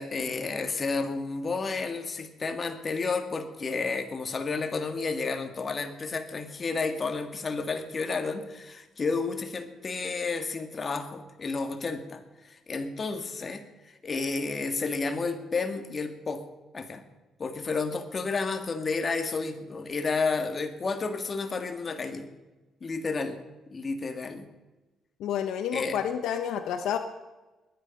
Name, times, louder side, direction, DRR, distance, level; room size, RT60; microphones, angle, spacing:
voice 1, 0.0-16.4 16.7-17.0 17.4-22.3 22.8-23.4 23.7-24.5 25.7-26.0, left 4 dB, 35° left, 7 dB, 1.9 m, -31 dB
voice 2, 25.2-27.0, left 9 dB, 80° left, 8 dB, 1.0 m, -29 dB
21.0 x 9.9 x 5.3 m, 1.1 s
cardioid pair, 90°, 0 cm